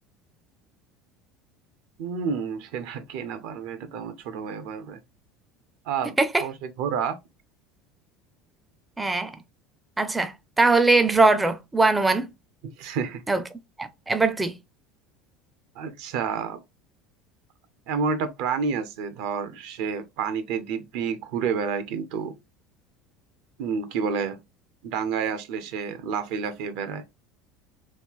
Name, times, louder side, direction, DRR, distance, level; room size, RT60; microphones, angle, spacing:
voice 1, 2.0-5.0 5.9-7.2 12.6-13.2 15.8-16.6 17.9-22.4 23.6-24.4 24.8-27.0, right 6 dB, 70° right, 0.6 m, -29 dB
voice 2, 9.0-9.3 10.0-12.3 13.3-13.4 13.8-14.5, right 3 dB, 10° right, 0.4 m, -21 dB
3.1 x 2.4 x 3.6 m
supercardioid pair, 110°, 0 cm